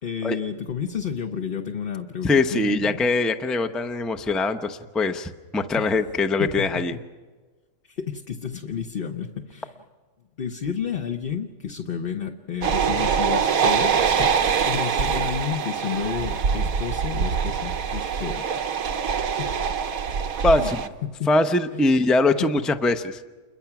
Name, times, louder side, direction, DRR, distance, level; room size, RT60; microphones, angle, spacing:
voice 1, 0.0-3.1 5.8-5.9 6.4-7.0 7.8-9.8 10.4-18.7 19.4-19.5 20.6-20.7 21.0-21.3 21.7-21.8 22.4-22.6, left 7 dB, 45° left, 4 dB, 1.1 m, -31 dB
voice 2, 2.2-7.0 20.4-20.8 21.3-23.2, left 2 dB, ahead, 8 dB, 0.5 m, -22 dB
sound 1, 12.6-20.9, right 6 dB, 90° right, 1.4 m, -24 dB
29.0 x 22.0 x 6.0 m, 1.4 s
omnidirectional pair, 1.5 m